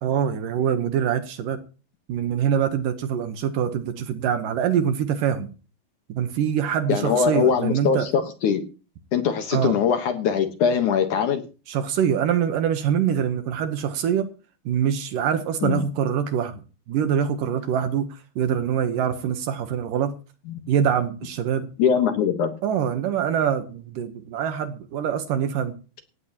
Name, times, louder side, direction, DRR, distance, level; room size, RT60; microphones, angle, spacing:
voice 1, 0.0-1.6 2.1-5.5 6.1-8.1 9.5-9.8 11.7-14.3 14.7-20.2 20.7-21.7 22.6-25.8, right 8 dB, 70° right, 9 dB, 2.5 m, -24 dB
voice 2, 6.9-8.6 9.1-11.4 15.6-15.8 20.5-20.6 21.8-22.5, left 7 dB, 65° left, 7 dB, 2.4 m, -22 dB
18.0 x 15.5 x 3.0 m, 0.34 s
omnidirectional pair, 4.5 m